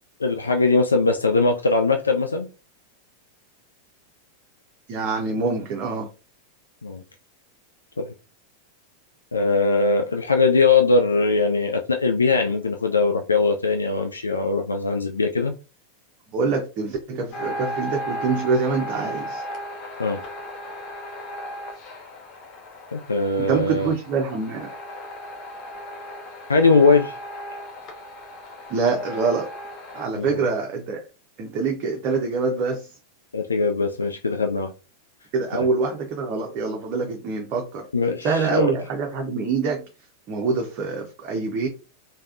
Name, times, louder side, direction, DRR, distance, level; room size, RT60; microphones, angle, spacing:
voice 1, 0.2-2.5 6.8-7.0 8.0-8.1 9.3-15.5 20.0-20.2 22.9-23.9 26.5-27.1 30.2-30.4 33.3-34.7 35.5-35.7 37.9-38.7, left 3 dB, 75° left, 0.3 m, -21 dB
voice 2, 4.9-6.1 16.3-19.4 23.4-24.7 28.7-29.5 29.9-31.1 31.4-32.9 35.3-37.9 38.2-39.8 40.3-41.7, right 4 dB, 40° right, 0.6 m, -25 dB
sound 1, 17.3-30.1, equal, 35° left, 0.7 m, -36 dB
3.3 x 2.1 x 2.4 m
figure-of-eight pair, 90°, 0 cm